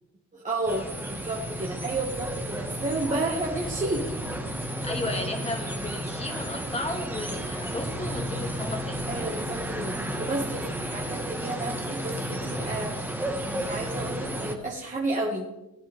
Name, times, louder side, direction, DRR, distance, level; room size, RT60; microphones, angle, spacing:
voice 1, 0.3-4.0 9.1-15.5, right 2 dB, 25° right, -3 dB, 2.1 m, -32 dB
sound 1, 0.7-14.5, equal, 5° right, 1.8 m, -33 dB
voice 2, 4.8-9.1 10.6-10.8, left 2 dB, 20° left, 3 dB, 2.4 m, -34 dB
19.0 x 9.3 x 3.7 m, 0.96 s
cardioid pair, 90°, 30 cm